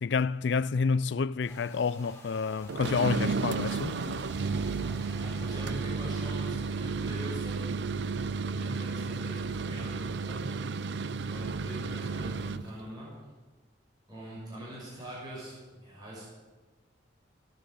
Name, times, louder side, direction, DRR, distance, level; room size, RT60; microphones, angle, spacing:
voice 1, 0.0-4.2, left 5 dB, 65° left, 0.4 m, -29 dB
sound 1, 1.4-6.4, left 1 dB, 15° left, 4.2 m, -52 dB
sound 2, 2.7-12.7, right 4 dB, 65° right, 0.5 m, -32 dB
voice 2, 5.2-7.7 8.5-10.8 11.3-13.1 14.1-16.2, equal, 20° right, 6.0 m, -43 dB
16.5 x 10.0 x 7.8 m
head